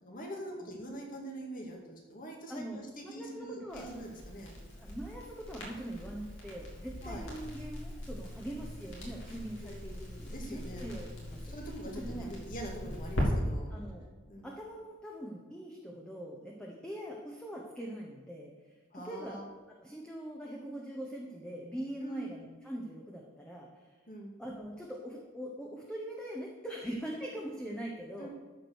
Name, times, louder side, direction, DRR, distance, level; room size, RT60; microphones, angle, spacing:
voice 1, 0.0-4.5 7.0-7.2 8.5-8.6 9.6-9.9 10.3-10.9 11.5-13.7 14.3-14.5 18.9-19.4 22.0-22.3 24.1-24.3 28.2-28.3, right 1 dB, 45° left, 0 dB, 2.2 m, -44 dB
voice 2, 2.5-3.9 4.7-11.5 11.9-12.3 13.7-14.0 14.4-19.4 19.8-23.9 24.4-28.3, right 1 dB, 5° left, -2 dB, 1.2 m, -42 dB
Crackle, 3.7-13.3, equal, 70° left, 3.3 m, -41 dB
13.5 x 5.1 x 6.4 m, 1.5 s
head